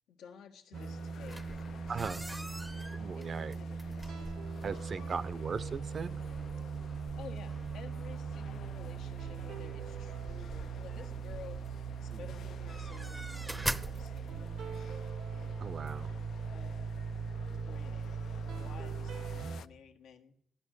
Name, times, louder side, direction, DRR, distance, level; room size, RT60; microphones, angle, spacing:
voice 1, 0.1-4.3 4.6-5.3 7.2-15.2 16.0-16.2 16.5-16.9 17.5-18.1 18.5-20.3, left 7 dB, 85° left, 3 dB, 1.4 m, -53 dB
sound 1, 0.7-19.7, left 8 dB, 70° left, 0.5 m, -53 dB
sound 2, 0.7-19.6, right 6 dB, 70° right, 0.9 m, -40 dB
sound 3, 1.2-14.8, right 1 dB, 5° right, 0.6 m, -45 dB
voice 2, 1.9-2.2 2.9-3.5 4.6-6.2 12.1-12.3 15.6-16.1, right 5 dB, 45° right, 17 dB, 0.6 m, -38 dB
14.5 x 11.5 x 6.4 m, 0.73 s
cardioid pair, 90°, 0 cm